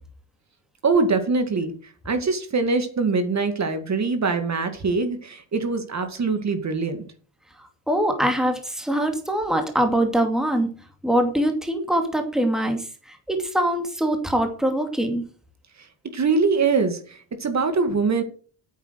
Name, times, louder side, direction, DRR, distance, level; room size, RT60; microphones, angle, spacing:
voice 1, 0.8-1.7 2.1-7.0 16.1-18.2, right 4 dB, 35° right, 8 dB, 2.3 m, -23 dB
voice 2, 7.9-10.7 11.0-15.2, right 1 dB, ahead, 5 dB, 2.6 m, -23 dB
9.0 x 8.9 x 8.1 m, 0.42 s
cardioid pair, 120°, 45 cm